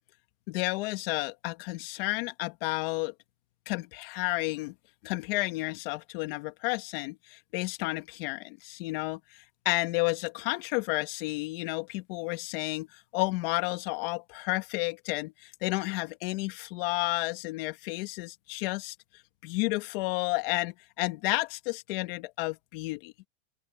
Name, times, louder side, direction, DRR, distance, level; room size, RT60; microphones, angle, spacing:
voice 1, 0.5-3.1 3.7-4.7 5.0-19.0 19.4-23.1, left 22 dB, 50° left, 2.2 m, -31 dB
open air
supercardioid pair, 170°, 38 cm